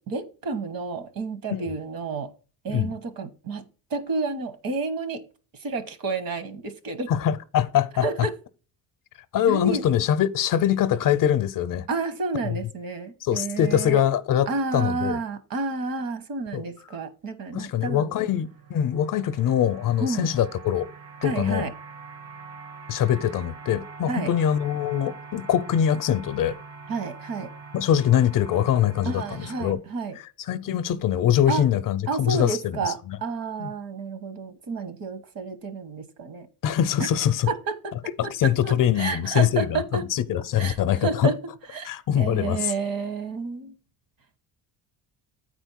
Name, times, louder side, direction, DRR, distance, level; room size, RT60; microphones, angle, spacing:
voice 1, 0.1-2.3 2.6-5.2 5.6-7.1 8.0-8.3 9.5-9.8 11.9-14.0 14.5-18.1 20.0-20.3 21.2-21.7 24.1-24.3 26.9-27.5 29.0-30.2 31.5-31.6 32.1-36.5 37.0-37.1 37.5-37.9 38.2-38.3 38.6-40.0 40.6-40.8 41.0-41.4 41.7-43.8, right 4 dB, 60° right, 1.3 m, -30 dB
voice 2, 7.1-8.3 9.3-11.9 13.2-14.5 14.7-15.2 16.5-16.7 17.5-20.9 21.2-21.7 22.9-26.6 27.7-29.8 30.5-33.2 33.6-33.7 36.6-37.5 38.2-41.3 41.8-42.7, left 10 dB, 55° left, 0.6 m, -23 dB
sound 1, 17.7-29.7, right 4 dB, 75° right, 2.0 m, -44 dB
8.8 x 4.4 x 4.6 m
cardioid pair, 140°, 40 cm